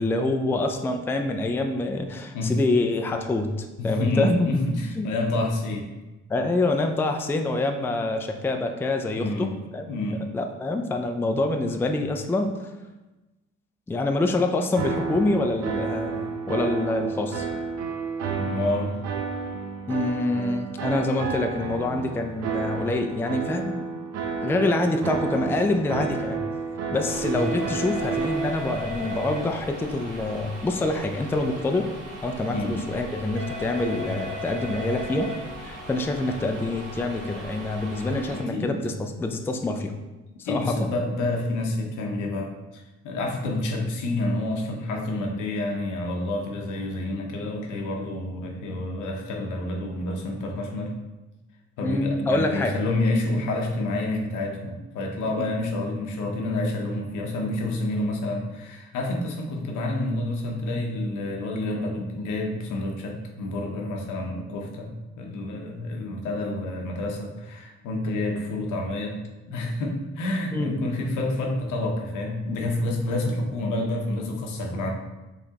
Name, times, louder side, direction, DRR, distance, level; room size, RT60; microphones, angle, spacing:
voice 1, 0.0-4.5 5.0-5.1 6.3-9.5 9.7-9.9 10.3-12.5 13.9-17.5 19.9-23.9 24.4-26.4 26.9-31.9 32.2-35.3 35.6-39.9 40.4-40.9 51.8-52.8 55.4-55.5 70.5-70.9, left 2 dB, 10° left, 5 dB, 0.3 m, -26 dB
voice 2, 3.8-5.9 9.2-9.5 9.9-10.2 18.4-18.9 27.3-27.4 32.5-32.7 38.3-38.8 40.4-51.0 51.8-69.2 69.5-74.9, left 2 dB, 85° left, 1 dB, 0.8 m, -28 dB
sound 1, 14.8-28.5, right 5 dB, 60° right, 0.6 m, -30 dB
sound 2, 27.0-38.4, left 1 dB, 80° right, 1.0 m, -37 dB
4.8 x 3.3 x 2.8 m, 1.1 s
cardioid pair, 90°, 30 cm